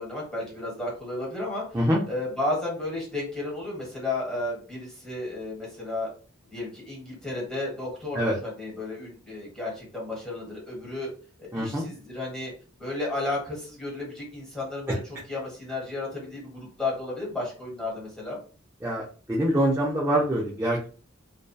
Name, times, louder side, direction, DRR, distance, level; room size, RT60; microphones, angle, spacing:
voice 1, 0.0-6.1 6.5-11.1 11.4-12.5 12.8-18.4, left 2 dB, 5° left, -5 dB, 1.1 m, -33 dB
voice 2, 11.5-11.8 18.8-20.9, right 1 dB, 10° right, -5 dB, 0.4 m, -25 dB
2.6 x 2.1 x 2.2 m, 0.39 s
head